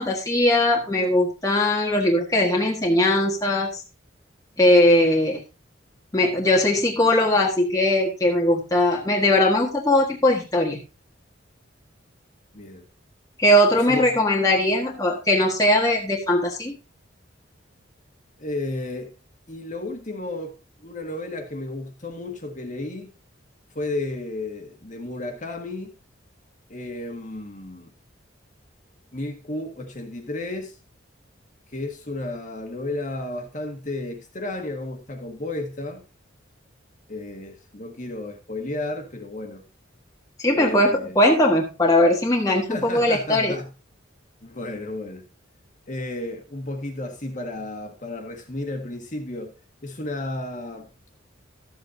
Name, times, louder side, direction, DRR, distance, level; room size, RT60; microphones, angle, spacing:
voice 1, 0.0-3.7 4.6-5.4 6.1-10.8 13.4-16.8 40.4-43.5, left 1 dB, 15° left, 1.5 m, -20 dB
voice 2, 12.5-12.8 13.7-14.2 18.4-19.1 19.5-20.5 20.8-23.1 23.7-25.9 26.7-27.9 29.1-30.8 31.7-36.0 37.1-39.6 40.5-41.2 42.7-43.7 44.4-45.2 45.9-49.5 49.8-50.9, left 2 dB, 40° left, 1.7 m, -33 dB
13.0 x 7.9 x 2.7 m
head